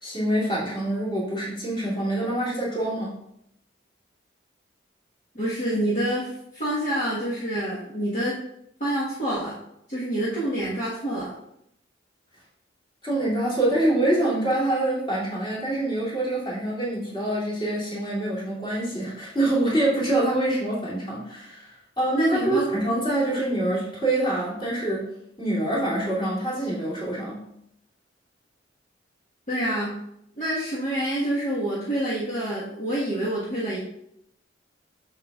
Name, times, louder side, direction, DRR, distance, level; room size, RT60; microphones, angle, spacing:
voice 1, 0.0-3.2 13.0-25.1 25.4-27.4, right 1 dB, 25° left, -7 dB, 2.7 m, -25 dB
voice 2, 5.3-8.4 8.8-9.6 9.9-11.3 22.2-22.6 29.5-29.9 30.4-33.8, right 1 dB, 40° left, -8 dB, 1.4 m, -27 dB
7.9 x 6.8 x 2.4 m, 0.78 s
head